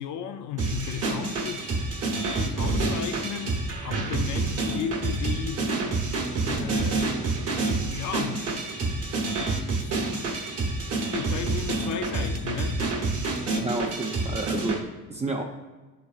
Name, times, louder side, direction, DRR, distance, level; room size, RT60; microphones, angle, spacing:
voice 1, 0.0-1.7 2.4-5.7 6.4-7.4 7.9-8.5 9.0-10.5 10.9-12.8, left 9 dB, 75° left, 0.6 m, -35 dB
sound 1, 0.6-14.8, right 3 dB, 50° right, 1.1 m, -28 dB
voice 2, 13.5-15.4, right 2 dB, 20° right, 0.6 m, -30 dB
10.5 x 4.2 x 2.4 m
cardioid pair, 90°, 30 cm